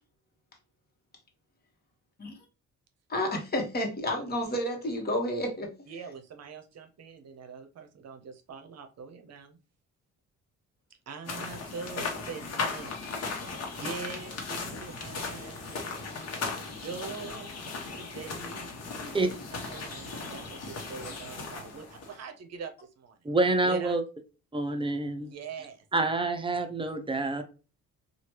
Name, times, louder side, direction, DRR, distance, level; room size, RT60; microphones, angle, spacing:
voice 1, 3.1-5.7, left 1 dB, 30° left, 1.2 m, -30 dB
voice 2, 5.9-9.6 11.1-12.9 13.4-15.9 16.7-17.6 17.9-18.7 19.0-23.2 23.6-24.0 25.2-25.8, right 5 dB, 55° right, 0.7 m, -43 dB
sound 1, 11.3-22.2, left 4 dB, 55° left, 1.0 m, -37 dB
voice 3, 23.2-24.0 24.5-25.3 25.9-27.4, right 2 dB, 15° right, 0.6 m, -27 dB
3.1 x 2.4 x 2.9 m
cardioid pair, 90°, 30 cm